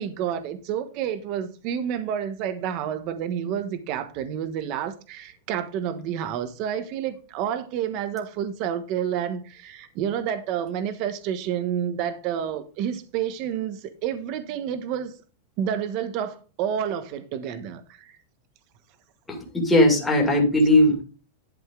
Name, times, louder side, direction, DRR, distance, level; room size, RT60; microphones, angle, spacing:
voice 1, 0.0-15.1 15.6-18.1, right 9 dB, 35° right, 1.1 m, -29 dB
voice 2, 19.3-21.0, left 1 dB, 5° left, 2.4 m, -19 dB
11.5 x 5.3 x 3.8 m
supercardioid pair, 175°, 0 cm